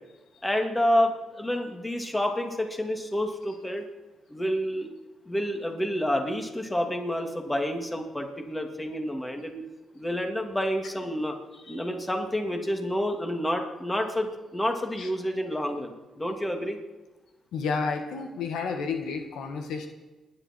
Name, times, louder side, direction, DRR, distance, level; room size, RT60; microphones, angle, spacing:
voice 1, 0.4-3.9 4.3-4.9 5.3-9.6 9.9-16.8, equal, 10° left, 4 dB, 2.6 m, -29 dB
voice 2, 17.5-19.9, left 5 dB, 85° left, 5 dB, 1.9 m, -31 dB
29.0 x 11.0 x 4.6 m, 1.1 s
cardioid pair, 85°, 0 cm